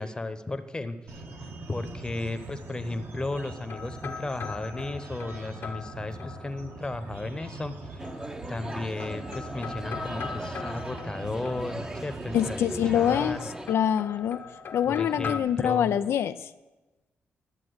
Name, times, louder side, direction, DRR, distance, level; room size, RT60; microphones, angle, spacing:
voice 1, 0.0-8.0 8.5-13.5 14.9-15.9, left 2 dB, 20° left, 9 dB, 0.9 m, -35 dB
sound 1, 1.1-13.4, right 2 dB, 65° right, 1.5 m, -42 dB
sound 2, 2.9-6.9 8.0-8.7 9.0-12.2 13.1-15.4, left 5 dB, 55° left, 0.9 m, -41 dB
sound 3, 8.0-13.7, right 1 dB, 15° right, 0.7 m, -39 dB
voice 2, 12.3-13.4 13.7-14.4 14.7-16.5, left 9 dB, 85° left, 11 dB, 0.4 m, -25 dB
11.5 x 7.3 x 7.9 m, 1.1 s
cardioid pair, 105°, 4 cm